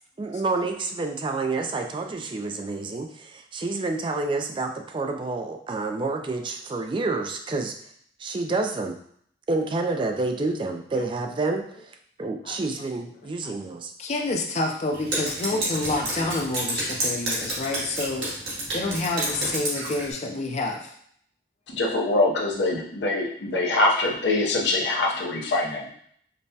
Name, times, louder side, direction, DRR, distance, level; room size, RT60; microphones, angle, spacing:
voice 1, 0.2-7.7 8.2-9.0 9.5-11.9 12.2-13.9, right 3 dB, 30° right, 4 dB, 0.3 m, -28 dB
voice 2, 14.0-18.3 18.7-20.9, left 2 dB, 40° left, 2 dB, 0.5 m, -28 dB
Drip, 14.9-20.1, right 1 dB, 75° right, 1.5 m, -30 dB
voice 3, 21.7-25.9, left 2 dB, 80° left, -1 dB, 0.7 m, -24 dB
5.2 x 2.1 x 2.7 m, 0.64 s
head